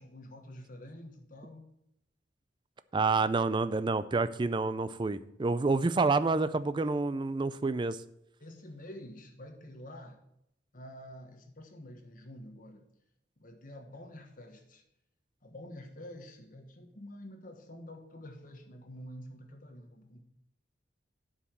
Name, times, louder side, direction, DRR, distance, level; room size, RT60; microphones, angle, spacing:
voice 1, 0.0-1.7 8.4-10.1 10.7-12.8 13.4-14.8 15.4-20.2, left 1 dB, 50° left, 4 dB, 1.3 m, -48 dB
voice 2, 2.9-8.0, right 3 dB, 25° right, 14 dB, 0.4 m, -28 dB
8.3 x 5.0 x 7.4 m, 0.79 s
head